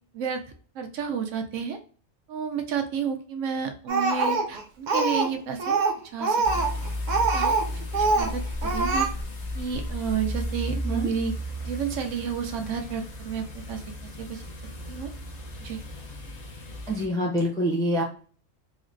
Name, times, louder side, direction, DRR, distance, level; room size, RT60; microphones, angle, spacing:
voice 1, 0.7-1.8 2.3-5.8 6.1-6.4 7.3-7.5 7.9-9.1 9.5-11.3 11.7-13.8 14.2-14.4 14.9-15.1 15.6-15.8, right 7 dB, 75° right, 5 dB, 0.9 m, -31 dB
Speech, 3.9-5.3 5.6-7.7 7.9-8.3 8.6-9.1, right 3 dB, 60° right, 0.5 m, -24 dB
sound 1, 6.4-17.1, left 1 dB, 45° left, 0.5 m, -34 dB
voice 2, 16.9-18.0, equal, 5° left, -2 dB, 0.6 m, -25 dB
3.8 x 2.1 x 2.5 m, 0.41 s
omnidirectional pair, 1.3 m